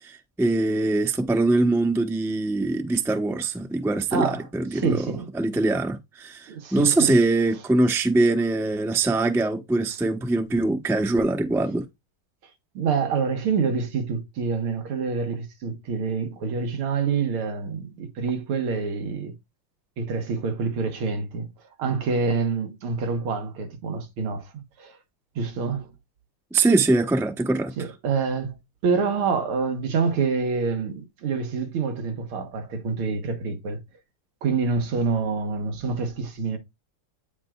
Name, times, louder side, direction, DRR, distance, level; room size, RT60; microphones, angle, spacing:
voice 1, 0.0-11.8 26.5-27.9, right 2 dB, ahead, 0.5 m, -23 dB
voice 2, 4.1-4.5 4.7-5.3 6.5-7.2 12.7-19.3 20.0-21.5 21.8-24.5 24.8-25.0 25.4-25.9 27.8-33.8 34.4-36.6, right 5 dB, 85° right, 2.2 m, -27 dB
9.0 x 5.3 x 2.4 m
omnidirectional pair, 2.3 m